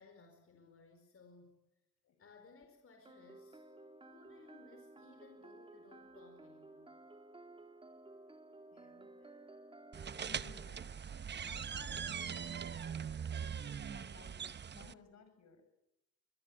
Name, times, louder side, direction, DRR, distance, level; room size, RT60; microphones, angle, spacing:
voice 1, 0.0-1.7 2.2-3.7 3.9-7.0, left 4 dB, 45° left, 5 dB, 4.8 m, -61 dB
sound 1, 3.0-10.7, right 2 dB, 15° right, 2.4 m, -56 dB
voice 2, 8.7-9.6 10.1-11.1 11.4-13.0 13.4-15.6, left 6 dB, 60° left, 9 dB, 5.8 m, -59 dB
sound 2, 9.9-14.9, right 7 dB, 35° right, 0.8 m, -41 dB
24.0 x 21.5 x 8.8 m, 0.94 s
cardioid pair, 90°, 30 cm